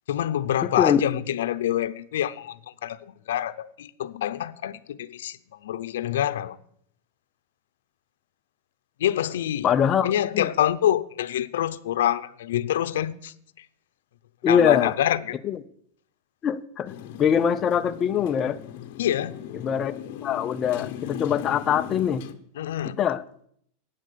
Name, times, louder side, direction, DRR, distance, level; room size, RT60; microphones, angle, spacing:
voice 1, 0.1-6.6 9.0-9.7 10.0-13.7 14.5-15.3 19.0-19.4 22.6-23.0, left 11 dB, 85° left, 0.7 m, -26 dB
voice 2, 9.6-10.5 14.4-14.9 15.4-15.6 16.4-16.9 17.2-18.6 19.6-19.9 20.2-22.2 22.8-23.2, left 8 dB, 25° left, 0.6 m, -23 dB
Motorcycle, 16.9-22.3, left 10 dB, 55° left, 1.1 m, -38 dB
14.0 x 9.4 x 6.8 m
supercardioid pair, 155°, 0 cm